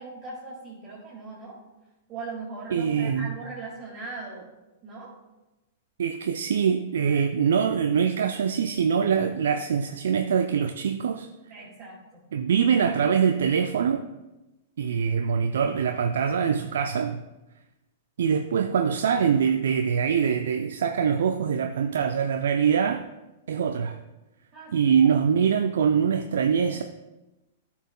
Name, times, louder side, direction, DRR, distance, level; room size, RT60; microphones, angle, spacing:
voice 1, 0.0-1.6 2.1-4.5 4.8-5.1 11.5-12.2 24.5-25.3, right 3 dB, 30° right, -6 dB, 2.2 m, -39 dB
voice 2, 2.7-3.3 6.0-11.3 12.3-14.0 14.8-17.2 18.2-23.0 23.5-24.0 24.7-26.8, right 7 dB, 65° right, 6 dB, 0.4 m, -23 dB
13.5 x 5.7 x 2.2 m, 1.0 s
figure-of-eight pair, 100°, 0 cm